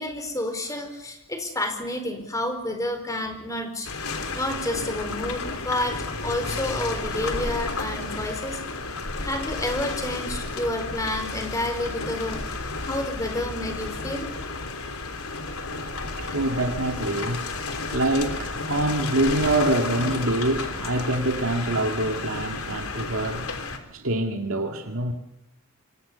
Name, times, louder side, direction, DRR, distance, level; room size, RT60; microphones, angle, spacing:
voice 1, 0.0-3.9 4.3-8.6 9.2-12.4 12.8-14.2, left 1 dB, 15° left, 6 dB, 4.6 m, -30 dB
sound 1, 3.8-23.8, left 3 dB, 85° left, 3.6 m, -32 dB
voice 2, 15.3-23.6 23.9-25.1, right 1 dB, 70° right, 4 dB, 2.3 m, -26 dB
27.5 x 25.0 x 7.0 m, 0.91 s
head